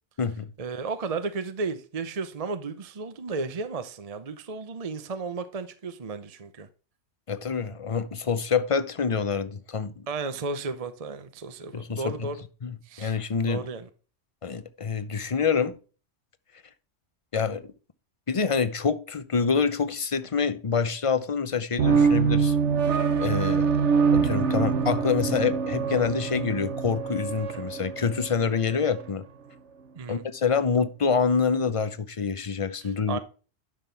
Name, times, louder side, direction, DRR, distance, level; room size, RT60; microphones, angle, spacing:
voice 1, 0.6-6.7 10.1-12.4 12.9-13.2 13.5-13.9 30.0-30.2 32.8-33.2, right 4 dB, 35° right, 0.7 m, -34 dB
voice 2, 7.3-10.0 11.7-12.3 12.6-13.6 14.4-15.8 17.3-17.6 18.3-22.6 23.1-23.7 24.1-29.2 30.1-33.2, left 5 dB, 35° left, 0.7 m, -26 dB
sound 1, 21.8-29.1, right 5 dB, 70° right, 1.2 m, -25 dB
11.0 x 6.0 x 3.3 m
omnidirectional pair, 1.3 m